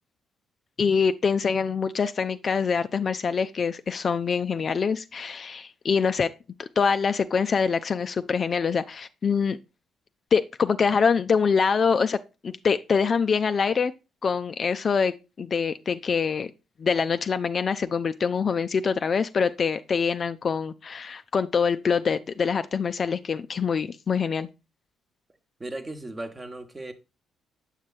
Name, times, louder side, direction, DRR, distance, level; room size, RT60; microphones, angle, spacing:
voice 1, 0.8-6.3 6.6-9.6 10.3-12.2 12.4-13.9 14.2-16.5 16.8-24.5, left 5 dB, 40° left, 0.4 m, -25 dB
voice 2, 25.6-26.9, right 2 dB, 25° right, 1.0 m, -36 dB
7.3 x 7.2 x 2.3 m
figure-of-eight pair, 40°, 0 cm